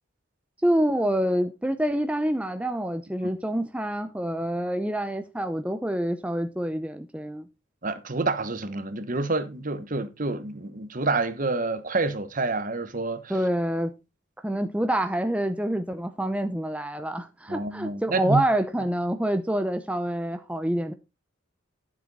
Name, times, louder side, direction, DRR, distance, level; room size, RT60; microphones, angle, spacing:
voice 1, 0.6-7.5 13.3-13.9 14.4-20.9, right 1 dB, 5° right, 0.6 m, -27 dB
voice 2, 7.8-13.3 17.5-18.4, right 3 dB, 40° right, 1.1 m, -28 dB
12.0 x 7.6 x 4.1 m
head